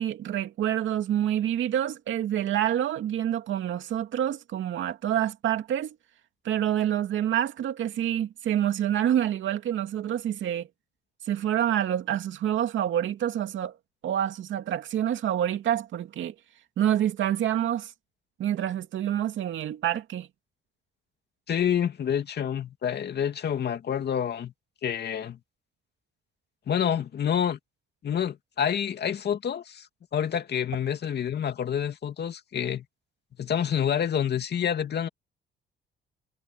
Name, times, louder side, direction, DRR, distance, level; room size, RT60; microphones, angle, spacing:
voice 1, 0.0-6.0 6.4-10.7 11.3-13.7 14.0-16.3 16.8-17.9 18.4-20.3, right 11 dB, 75° right, 2.5 m, -27 dB
voice 2, 21.5-24.5 24.8-25.4 26.7-27.6 28.0-29.9 30.1-32.8 33.4-35.1, left 8 dB, 55° left, 2.5 m, -28 dB
cardioid pair, 90°, 20 cm